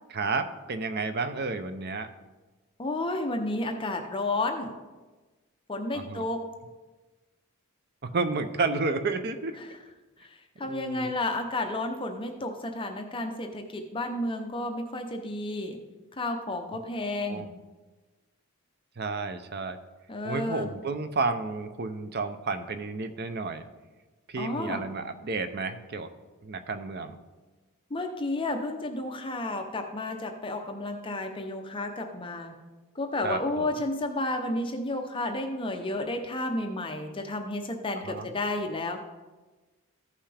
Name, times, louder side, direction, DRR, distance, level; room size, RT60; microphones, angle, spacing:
voice 1, 0.1-2.1 5.9-6.2 8.0-9.6 10.6-11.2 17.3-17.5 19.0-19.8 20.2-23.6 24.3-26.1 26.4-27.2 33.2-33.7 38.0-38.3, right 3 dB, 45° right, 9 dB, 0.6 m, -31 dB
voice 2, 2.8-4.7 5.7-6.4 9.6-9.7 10.6-15.8 16.2-17.4 20.1-20.7 24.4-24.9 27.9-32.6 33.0-39.0, left 2 dB, 25° left, 4 dB, 0.7 m, -31 dB
14.5 x 5.7 x 3.4 m, 1.2 s
head